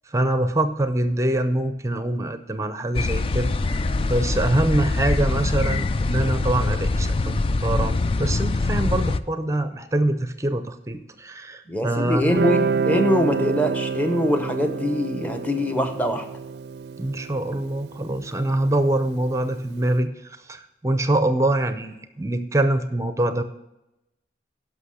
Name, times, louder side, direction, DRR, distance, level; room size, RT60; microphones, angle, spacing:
voice 1, 0.1-3.8 4.1-12.4 17.0-23.4, right 1 dB, 15° right, 10 dB, 0.6 m, -24 dB
sound 1, 3.0-9.2, left 2 dB, 30° left, 0.3 m, -23 dB
voice 2, 11.7-16.3, left 1 dB, 10° left, 7 dB, 0.9 m, -23 dB
Guitar, 12.2-19.4, right 5 dB, 65° right, 0.4 m, -28 dB
11.5 x 6.2 x 6.3 m, 0.92 s
head